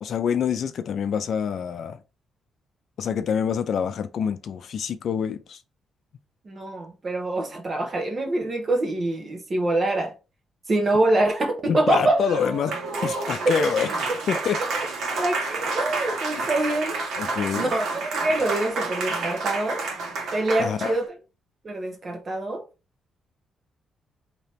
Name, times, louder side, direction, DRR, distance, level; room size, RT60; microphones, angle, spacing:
voice 1, 0.0-2.0 3.0-5.6 11.7-12.8 13.0-13.9 14.3-14.6 16.4-16.5 17.2-17.7 20.6-21.0, left 7 dB, 60° left, 0.4 m, -26 dB
voice 2, 6.4-10.1 10.7-12.2 13.6-13.7 15.1-16.9 17.5-19.8 20.3-21.2 21.6-22.6, right 2 dB, 35° right, 1.1 m, -25 dB
Applause, 11.9-21.1, right 3 dB, 75° right, 1.3 m, -29 dB
3.3 x 2.9 x 4.2 m
cardioid pair, 105°, 0 cm